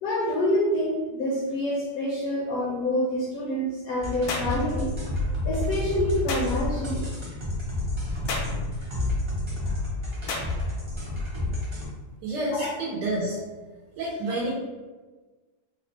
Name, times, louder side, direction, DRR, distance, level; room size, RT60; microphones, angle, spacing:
voice 1, 0.0-4.9 5.4-7.1 12.5-12.7, left 1 dB, 65° left, -2 dB, 0.9 m, -27 dB
sound 1, 4.0-11.9, left 2 dB, 35° right, 0.4 m, -30 dB
sound 2, 4.3-4.6 6.3-6.5 8.3-8.6 10.3-10.5, left 3 dB, 90° left, 1.4 m, -30 dB
voice 2, 12.2-13.4 14.0-14.5, right 1 dB, 80° right, -5 dB, 1.3 m, -28 dB
3.4 x 2.1 x 3.9 m, 1.3 s
omnidirectional pair, 1.9 m